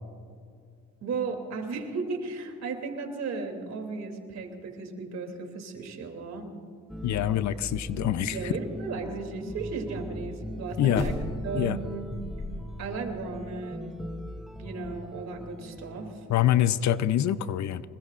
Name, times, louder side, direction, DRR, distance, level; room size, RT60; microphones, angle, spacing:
voice 1, 1.0-6.5 8.3-11.1 11.4-12.1 12.8-13.9 14.6-16.1, right 4 dB, 60° right, 4 dB, 3.0 m, -35 dB
sound 1, 6.9-16.5, equal, ahead, 0.8 m, -40 dB
voice 2, 7.0-8.5 10.8-11.0 11.5-11.8 16.3-17.8, left 12 dB, 65° left, 15 dB, 0.6 m, -25 dB
sound 2, 10.9-11.6 12.1-12.9 13.2-13.3, left 2 dB, 20° left, 2.9 m, -33 dB
25.5 x 21.5 x 2.5 m, 2.3 s
cardioid pair, 90°, 30 cm